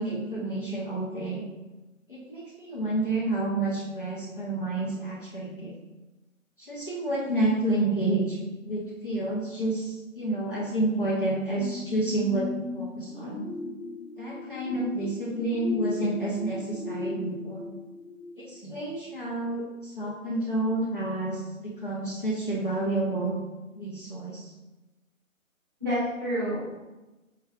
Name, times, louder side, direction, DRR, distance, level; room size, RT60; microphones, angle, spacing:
voice 1, 0.0-1.4 2.1-5.8 6.6-13.4 14.2-17.7 18.4-23.4 23.7-24.5, right 2 dB, 40° left, -5 dB, 0.5 m, -29 dB
sound 1, 11.6-18.9 19.4-19.5, left 3 dB, 70° left, 1.3 m, -37 dB
voice 2, 25.8-26.6, equal, 15° right, -11 dB, 0.8 m, -29 dB
4.4 x 2.4 x 2.3 m, 1.1 s
figure-of-eight pair, 150°, 41 cm